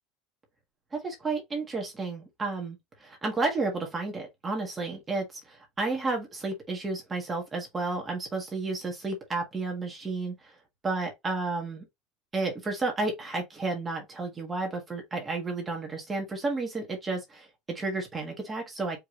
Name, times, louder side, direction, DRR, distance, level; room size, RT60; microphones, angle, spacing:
voice 1, 0.9-10.5 10.8-11.8 12.3-19.0, right 3 dB, 15° right, 1.5 m, -32 dB
4.8 x 3.4 x 3.1 m
cardioid pair, 180°, 0 cm